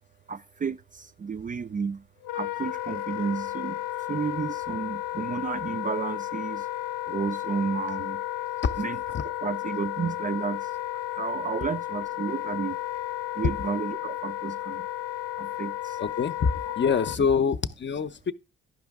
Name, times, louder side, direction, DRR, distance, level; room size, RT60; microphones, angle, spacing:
voice 1, 0.3-2.0 2.3-3.8 4.1-6.7 7.1-8.2 8.8-12.8 13.3-14.9 15.4-16.0 17.2-17.3, right 5 dB, 25° right, 0.4 m, -32 dB
Wind instrument woodwind instrument, 2.2-17.2, left 14 dB, 85° left, 0.5 m, -33 dB
voice 2, 16.0-18.3, left 6 dB, 35° left, 0.7 m, -25 dB
11.5 x 5.1 x 3.5 m
supercardioid pair, 55°, 31 cm